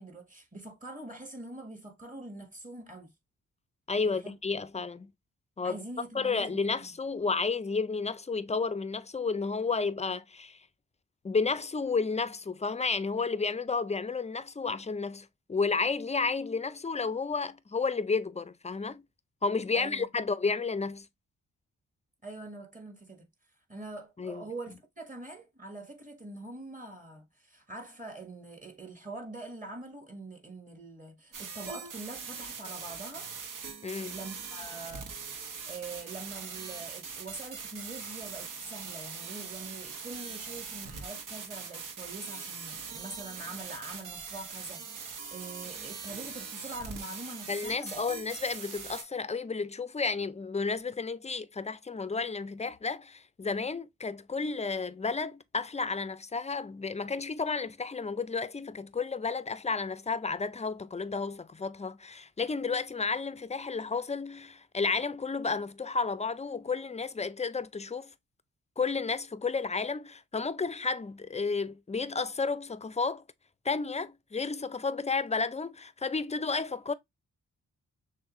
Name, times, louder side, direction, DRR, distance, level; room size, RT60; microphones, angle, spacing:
voice 1, 0.0-3.1 4.0-4.3 5.6-7.0 19.7-20.1 22.2-23.3 23.7-33.3 34.1-35.1 35.7-44.8 45.3-48.0, right 2 dB, 25° right, 1.4 m, -44 dB
voice 2, 3.9-5.1 5.6-5.8 6.1-10.6 11.2-19.1 19.4-21.1 24.2-24.4 33.8-34.2 47.5-68.1 68.8-73.2 73.6-76.9, left 4 dB, 20° left, 0.5 m, -32 dB
sound 1, 31.3-49.0, right 5 dB, 65° right, 1.0 m, -42 dB
6.4 x 2.2 x 3.0 m
supercardioid pair, 50°, 34 cm